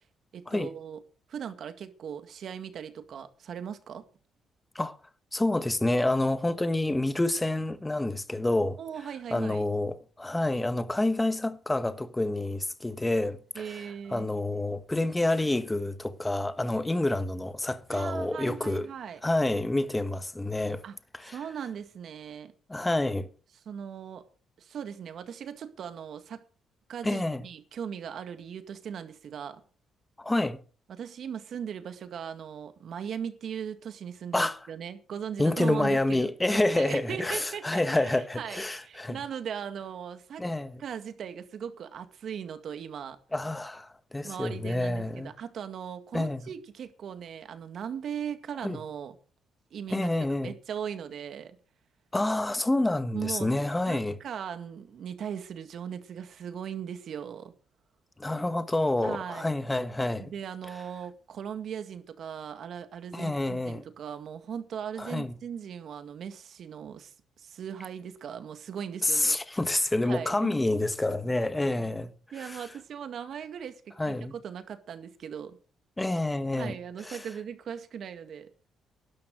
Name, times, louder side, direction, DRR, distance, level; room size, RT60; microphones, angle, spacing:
voice 1, 0.3-1.0 1.3-4.1 8.8-9.6 13.6-14.3 17.9-19.2 20.8-21.0 21.2-22.5 23.7-24.2 24.6-26.4 26.9-29.6 30.9-40.4 40.8-43.2 44.2-49.1 49.7-50.1 50.4-51.6 53.1-53.5 53.9-57.5 59.0-59.5 60.2-69.4 70.0-70.5 72.3-75.6 76.6-78.5, right 8 dB, 65° right, 2.0 m, -39 dB
voice 2, 5.3-8.8 9.3-13.8 14.1-18.9 19.2-20.8 21.1-21.4 22.7-23.3 27.0-27.4 30.2-30.6 34.3-34.6 35.4-39.2 40.4-40.8 43.3-45.3 46.1-46.4 48.6-48.8 49.9-50.5 52.1-54.2 58.2-60.3 63.1-63.8 65.0-65.3 69.0-72.1 72.4-72.6 74.0-74.3 76.0-76.8 77.0-77.3, left 2 dB, 15° left, 1.3 m, -28 dB
12.5 x 11.5 x 6.3 m
cardioid pair, 90°, 0 cm